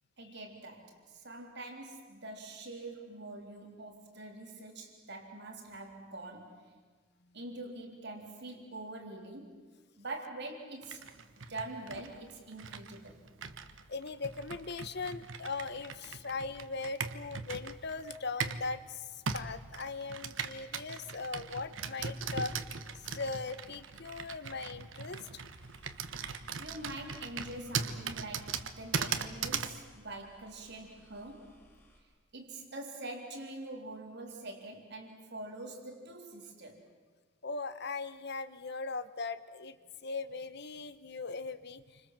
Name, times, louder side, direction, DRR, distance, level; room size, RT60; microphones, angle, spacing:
voice 1, 0.2-6.7 7.3-9.7 10.0-11.1 11.5-13.3 26.6-31.6 32.0-32.1 32.3-36.9, right 2 dB, 60° right, 2 dB, 3.8 m, -45 dB
Computer keyboard, 10.8-18.7 19.3-29.8, right 5 dB, 80° right, 1.3 m, -39 dB
voice 2, 13.9-22.5 23.0-25.4 37.4-39.8 40.0-42.1, left 4 dB, 60° left, 12 dB, 1.2 m, -39 dB
sound 1, 25.6-32.0, left 1 dB, 10° left, 4.9 m, -62 dB
29.0 x 25.5 x 7.5 m, 1.4 s
head